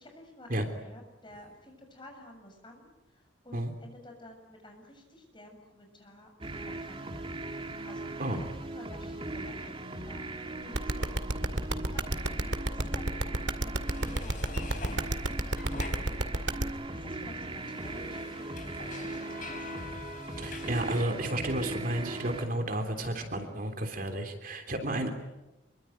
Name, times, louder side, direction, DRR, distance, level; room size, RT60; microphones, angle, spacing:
voice 1, 0.0-6.3 6.6-7.3 7.6-11.4 11.7-16.3 16.9-19.9, left 1 dB, 25° left, 3 dB, 7.2 m, -52 dB
sound 1, 6.4-22.5, right 2 dB, 30° right, 2.0 m, -39 dB
sound 2, 10.7-16.6, right 2 dB, 70° right, 2.2 m, -29 dB
sound 3, 13.9-16.7 17.0-21.0, left 4 dB, 45° left, 4.5 m, -45 dB
voice 2, 20.4-25.1, right 1 dB, 45° right, 6 dB, 3.4 m, -32 dB
26.0 x 24.0 x 9.3 m, 0.98 s
head